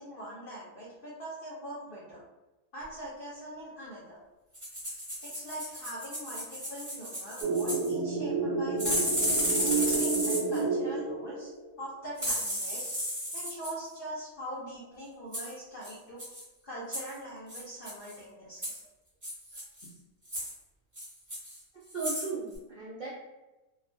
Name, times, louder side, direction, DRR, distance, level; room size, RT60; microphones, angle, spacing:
voice 1, 0.0-2.2 2.7-4.2 5.2-9.0 9.5-11.5 11.8-12.9 13.3-16.3 16.6-18.6, right 1 dB, 65° left, -7 dB, 0.5 m, -42 dB
sound 1, 4.5-7.9 8.8-10.6 12.2-13.7 15.3-15.5 15.8-15.9 16.2-16.4 16.9-17.1 17.5-18.1 18.6-18.8 19.2-19.9 20.3-20.5 21.0-21.6 21.9-22.3 22.6-22.7, equal, 20° right, 0.6 m, -33 dB
sound 2, 7.4-11.7, right 4 dB, 90° right, 1.0 m, -30 dB
voice 2, 21.9-23.1, right 4 dB, 65° right, -8 dB, 0.4 m, -36 dB
2.3 x 2.2 x 2.5 m, 1.1 s
omnidirectional pair, 1.5 m